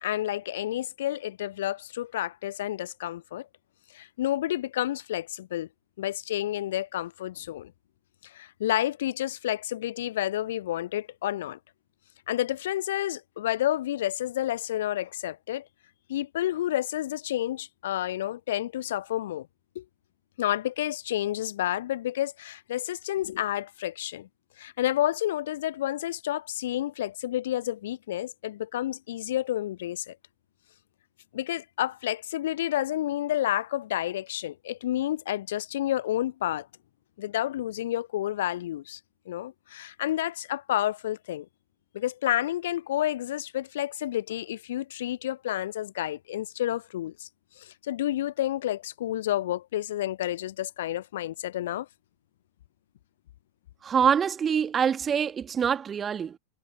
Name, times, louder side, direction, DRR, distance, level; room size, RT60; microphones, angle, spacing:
voice 1, 0.0-3.5 3.9-5.7 6.0-7.7 8.3-11.6 12.3-15.6 16.1-19.5 19.8-19.9 20.4-24.3 24.6-30.2 31.3-36.7 37.2-39.0 39.3-41.5 41.9-47.3 47.6-51.9, left 13 dB, 60° left, 0.3 m, -30 dB
voice 2, 53.8-56.4, right 7 dB, 20° right, 1.7 m, -25 dB
figure-of-eight pair, 90°, 0 cm